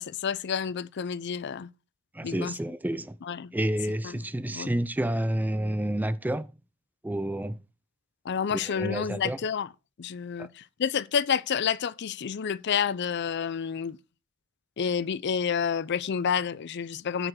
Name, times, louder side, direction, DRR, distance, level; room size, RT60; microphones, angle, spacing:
voice 1, 0.0-1.7 2.2-2.5 3.3-3.5 4.5-4.7 8.3-9.7 10.0-14.0 14.8-17.3, left 7 dB, 55° left, 0.5 m, -29 dB
voice 2, 2.1-3.2 3.5-6.5 7.0-7.6 8.5-9.4 10.4-10.5, right 1 dB, 10° right, 0.4 m, -29 dB
9.7 x 5.0 x 6.3 m
head